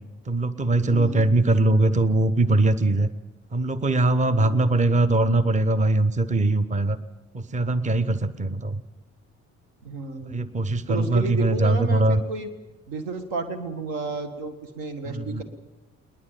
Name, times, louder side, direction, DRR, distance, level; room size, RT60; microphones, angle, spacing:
voice 1, 0.3-3.1 3.5-7.0 7.3-8.8 10.3-12.2 15.0-15.4, right 2 dB, 15° right, 15 dB, 0.9 m, -21 dB
voice 2, 0.8-1.3 4.4-4.8 9.8-10.5 10.9-12.5 12.9-15.4, right 3 dB, 70° right, 11 dB, 1.9 m, -32 dB
21.0 x 19.5 x 7.8 m, 1.1 s
figure-of-eight pair, 45°, 41 cm